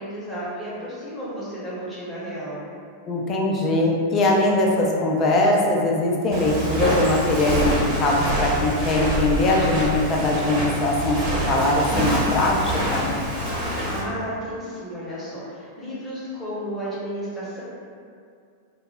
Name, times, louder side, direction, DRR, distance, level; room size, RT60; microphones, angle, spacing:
voice 1, 0.0-2.6 13.8-17.6, equal, 10° left, -10 dB, 0.9 m, -33 dB
voice 2, 3.0-11.2 11.5-13.1, left 2 dB, 30° left, -2 dB, 0.4 m, -21 dB
Walk footsteps, 6.3-14.0, right 1 dB, 40° right, 0.9 m, -25 dB
2.1 x 2.1 x 3.2 m, 2.3 s
figure-of-eight pair, 90°, 0 cm